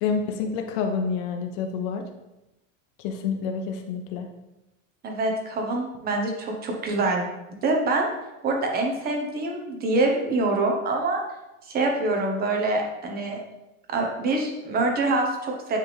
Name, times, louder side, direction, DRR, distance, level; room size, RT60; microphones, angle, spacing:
voice 1, 0.0-2.1 3.0-4.3, left 5 dB, 50° left, 5 dB, 1.0 m, -28 dB
voice 2, 5.0-7.2 7.6-8.1 8.4-11.2 11.7-13.4 13.9-15.8, right 2 dB, 25° right, 2 dB, 1.0 m, -25 dB
9.8 x 3.5 x 3.4 m, 0.97 s
supercardioid pair, 155°, 38 cm